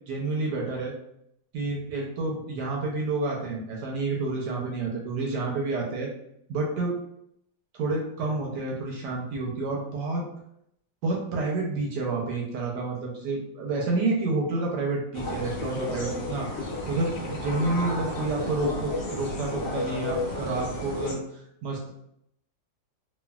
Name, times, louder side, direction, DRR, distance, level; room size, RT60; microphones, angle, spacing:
voice 1, 0.1-0.9 1.5-6.1 6.5-6.9 7.8-10.2 11.0-21.9, right 3 dB, 75° right, -1 dB, 1.1 m, -29 dB
sound 1, 15.1-21.1, left 2 dB, 75° left, 1.1 m, -32 dB
3.2 x 2.3 x 2.2 m, 0.74 s
omnidirectional pair, 2.0 m